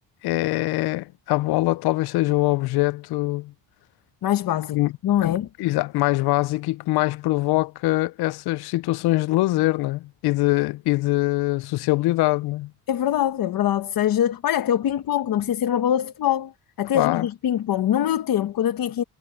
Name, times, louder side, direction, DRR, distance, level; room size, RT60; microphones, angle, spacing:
voice 1, 0.2-3.5 4.7-4.9 5.2-12.7 16.9-17.3, left 19 dB, 80° left, 0.5 m, -23 dB
voice 2, 4.2-5.5 12.9-16.5 16.8-19.0, left 11 dB, 65° left, 1.3 m, -23 dB
cardioid pair, 130°, 38 cm